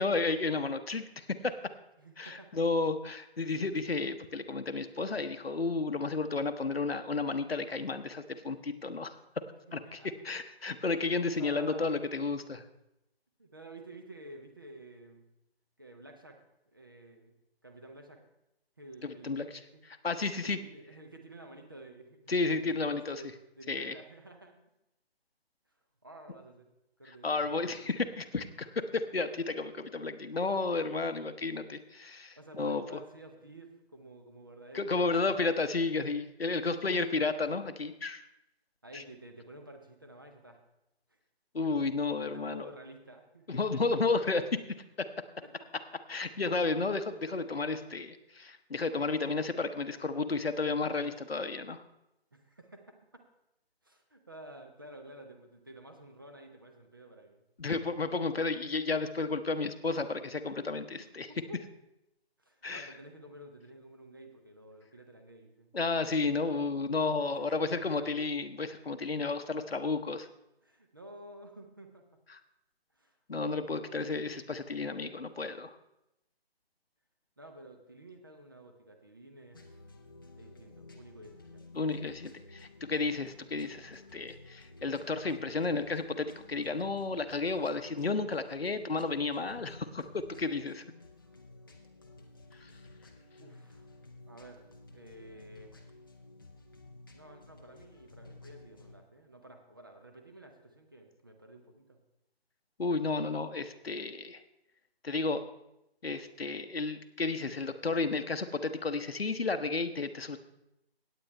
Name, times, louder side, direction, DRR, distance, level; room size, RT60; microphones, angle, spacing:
voice 1, 0.0-1.5 2.2-9.1 9.7-10.0 10.2-12.6 19.0-19.6 20.0-20.6 22.3-23.2 23.7-24.0 27.0-33.0 34.7-38.2 38.9-39.0 41.5-42.7 43.5-44.6 45.0-45.1 46.1-51.8 57.6-61.3 62.6-62.9 65.7-70.2 73.3-75.8 81.7-90.8 92.6-92.7 102.8-104.4 105.0-105.4 106.0-110.4, left 3 dB, 70° left, 10 dB, 1.0 m, -32 dB
voice 2, 2.0-2.6 9.7-10.1 11.2-12.0 13.4-15.3 15.8-16.4 16.7-17.3 17.6-18.2 18.8-19.5 19.7-19.8 20.4-24.5 25.7-25.8 26.0-26.7 27.0-27.9 32.4-35.4 36.5-37.2 38.8-40.6 41.1-41.2 42.3-43.8 45.4-45.7 52.3-53.2 53.8-57.4 61.0-61.6 62.4-65.7 67.4-68.1 69.7-69.8 70.6-72.0 72.9-73.7 77.4-79.7 80.4-81.6 93.4-93.9 94.3-95.8 97.1-102.0, right 1 dB, 20° right, 5 dB, 0.6 m, -51 dB
sound 1, 79.5-98.9, left 2 dB, 20° left, 0.6 m, -53 dB
17.0 x 8.7 x 3.3 m, 0.87 s
figure-of-eight pair, 150°, 31 cm